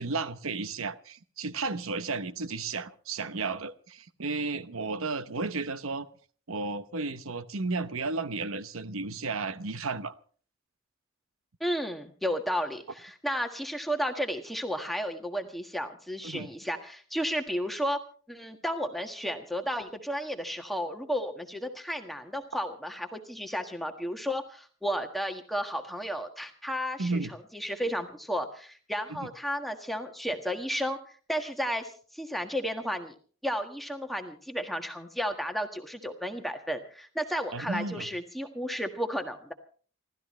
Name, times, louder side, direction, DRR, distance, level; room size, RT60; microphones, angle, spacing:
voice 1, 0.0-6.1 6.5-10.1 16.2-16.5 27.0-27.3 29.1-29.3 37.5-38.1, right 3 dB, 80° right, 12 dB, 0.9 m, -33 dB
voice 2, 11.6-18.0 18.3-27.2 27.5-31.0 31.3-33.1 33.4-39.5, equal, ahead, 4 dB, 1.5 m, -33 dB
28.5 x 13.5 x 3.2 m, 0.43 s
head